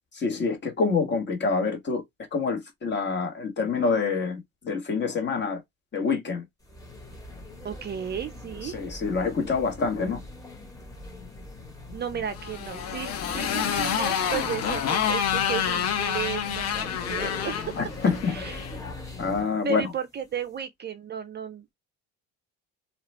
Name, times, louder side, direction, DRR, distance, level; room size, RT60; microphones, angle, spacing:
voice 1, 0.2-2.0 2.3-5.6 5.9-6.4 8.6-10.2 17.8-18.3 19.2-19.9, left 4 dB, 35° left, 1.5 m, -26 dB
sound 1, 6.6-19.6, left 2 dB, 10° left, 1.3 m, -41 dB
voice 2, 7.6-8.8 11.9-17.6 18.3-18.7 19.6-21.7, right 7 dB, 35° right, 0.5 m, -34 dB
Motorcycle, 12.3-18.8, left 8 dB, 55° left, 0.9 m, -28 dB
2.9 x 2.4 x 3.2 m
cardioid pair, 100°, 31 cm